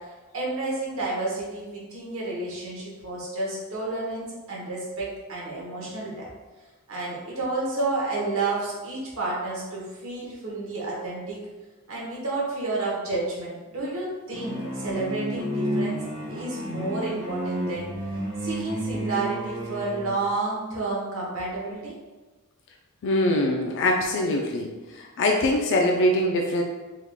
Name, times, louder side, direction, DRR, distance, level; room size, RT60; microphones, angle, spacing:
voice 1, 0.3-6.3 6.9-11.4 11.9-16.0 16.3-17.9 18.4-21.9, right 2 dB, 70° right, -4 dB, 1.1 m, -30 dB
sound 1, 14.3-20.2, equal, 20° right, 1.0 m, -31 dB
voice 2, 23.0-24.7 24.9-26.6, left 1 dB, 60° left, 1 dB, 0.3 m, -23 dB
3.5 x 3.4 x 2.3 m, 1.2 s
head